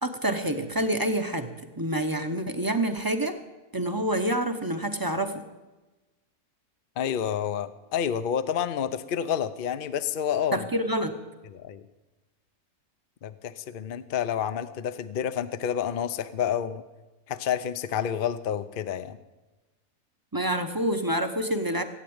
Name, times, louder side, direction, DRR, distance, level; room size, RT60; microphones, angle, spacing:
voice 1, 0.0-1.5 1.8-3.4 3.7-5.4 10.5-11.2 20.3-21.8, right 1 dB, 15° right, 7 dB, 0.8 m, -27 dB
voice 2, 7.0-10.7 11.5-11.8 13.2-16.8 17.3-19.2, left 9 dB, 50° left, 12 dB, 0.7 m, -29 dB
16.5 x 9.0 x 8.8 m, 1.1 s
omnidirectional pair, 1.7 m